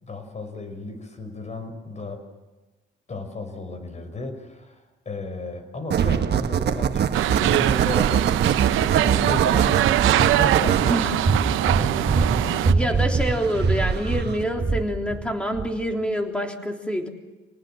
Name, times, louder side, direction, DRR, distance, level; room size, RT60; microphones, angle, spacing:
voice 1, 0.0-2.2 3.1-13.0, left 2 dB, 35° left, 8 dB, 5.4 m, -34 dB
sound 1, 5.9-14.4, right 8 dB, 55° right, 1.2 m, -24 dB
sound 2, 7.1-12.7, right 13 dB, 90° right, 0.8 m, -22 dB
sound 3, 11.2-15.3 15.5-15.7, right 4 dB, 35° right, 2.9 m, -23 dB
voice 2, 12.7-17.1, equal, 5° left, 3 dB, 3.6 m, -26 dB
27.0 x 19.0 x 7.6 m, 1.2 s
cardioid pair, 90°, 20 cm